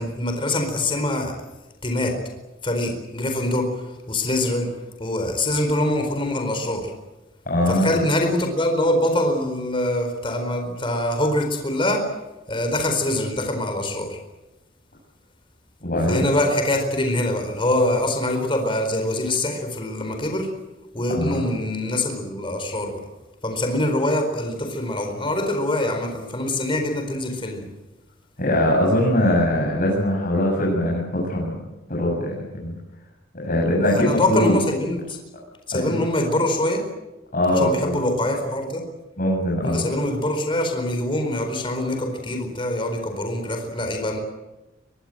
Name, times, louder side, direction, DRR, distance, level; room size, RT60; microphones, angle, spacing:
voice 1, 0.0-1.4 1.8-2.2 2.6-6.9 7.7-12.1 12.5-14.2 16.1-20.5 20.9-23.0 23.4-27.7 33.8-35.2 35.7-36.9 37.5-38.8 39.6-44.2, left 1 dB, 30° left, 5 dB, 4.4 m, -24 dB
voice 2, 7.5-8.0 15.8-16.2 21.1-21.4 28.4-31.6 31.9-32.7 33.3-34.5 35.7-36.0 37.3-37.9 39.2-39.8, left 1 dB, 45° left, -4 dB, 7.5 m, -21 dB
23.5 x 23.0 x 7.8 m, 1.0 s
head